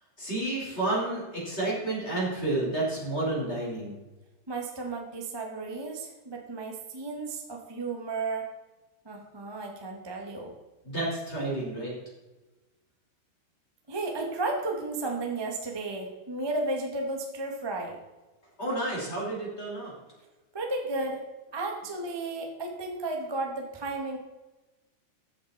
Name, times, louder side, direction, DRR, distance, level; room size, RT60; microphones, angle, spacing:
voice 1, 0.2-4.0 10.8-11.9 18.6-19.9, right 2 dB, 15° left, -4 dB, 5.1 m, -30 dB
voice 2, 4.5-8.4 9.0-10.5 13.9-18.0 20.5-21.2 21.5-24.2, right 2 dB, 30° right, 1 dB, 0.4 m, -33 dB
14.5 x 10.5 x 4.4 m, 1.1 s
omnidirectional pair, 4.6 m